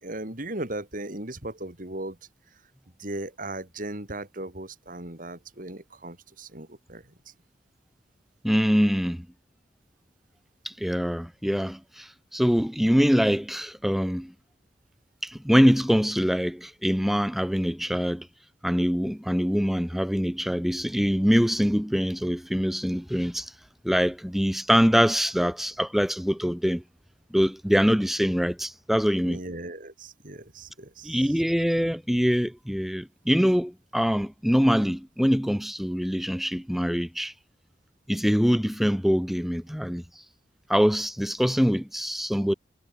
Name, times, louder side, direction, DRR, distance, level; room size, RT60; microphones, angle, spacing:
voice 1, 0.0-2.2 3.0-7.0 29.2-31.3, right 1 dB, 45° right, 3.6 m, -37 dB
voice 2, 8.4-9.3 10.6-14.3 15.2-18.3 18.6-23.5 23.8-26.8 27.3-29.4 31.0-37.3 38.1-40.0 40.7-42.5, equal, ahead, 0.7 m, -24 dB
head